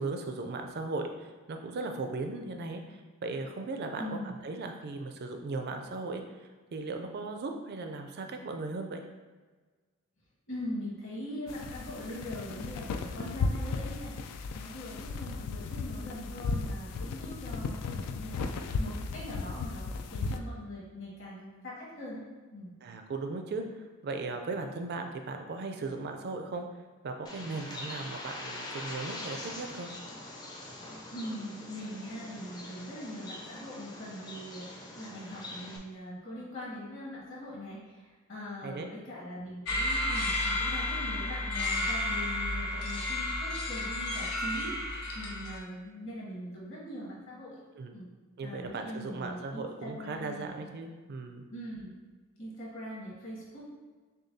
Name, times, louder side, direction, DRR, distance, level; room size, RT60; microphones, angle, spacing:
voice 1, 0.0-6.2 6.7-9.0 22.8-26.7 27.0-29.9 38.6-38.9 47.7-48.0 48.4-51.4, right 3 dB, 45° right, 5 dB, 0.4 m, -37 dB
voice 2, 4.0-4.4 10.5-14.1 14.5-22.2 22.5-22.7 31.1-37.8 38.3-47.6 47.9-48.1 48.4-50.7 51.5-51.9 52.4-53.7, equal, 60° left, -6 dB, 1.5 m, -42 dB
sound 1, 11.5-20.4, left 4 dB, 90° left, 0.3 m, -35 dB
Bird, 27.2-35.8, left 2 dB, 20° left, 0.4 m, -43 dB
sound 2, 39.6-45.6, left 1 dB, 75° left, 0.7 m, -32 dB
6.4 x 2.3 x 2.7 m, 1.4 s
head